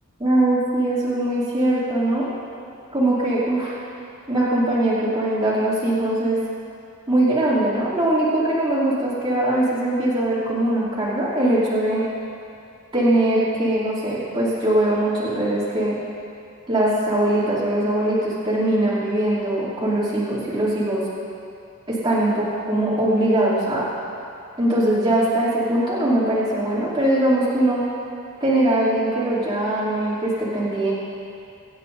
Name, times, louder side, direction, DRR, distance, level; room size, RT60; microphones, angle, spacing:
voice 1, 0.2-2.3 2.9-3.8 4.3-6.4 7.1-12.0 12.9-15.9 16.7-21.0 21.9-23.9 24.6-27.8 28.4-30.9, right 1 dB, 20° right, -11 dB, 2.9 m, -21 dB
25.5 x 8.9 x 2.7 m, 2.6 s
head